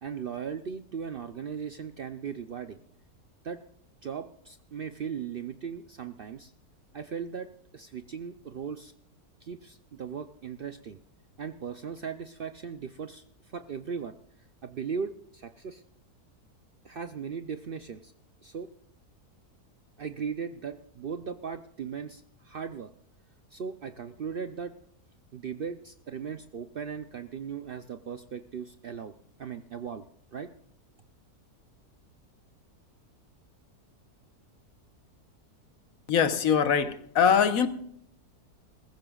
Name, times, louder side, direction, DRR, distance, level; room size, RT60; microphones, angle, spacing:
voice 1, 0.0-2.8 3.4-3.6 4.0-6.5 6.9-7.5 7.7-8.9 9.4-11.0 11.4-14.1 14.6-15.8 16.8-18.1 18.4-18.7 20.0-22.9 23.5-24.7 25.3-29.1 29.4-30.0 30.3-30.5, right 6 dB, 65° right, 0.5 m, -38 dB
voice 2, 36.1-37.7, left 7 dB, 65° left, 1.4 m, -23 dB
20.0 x 15.0 x 2.3 m
omnidirectional pair, 1.6 m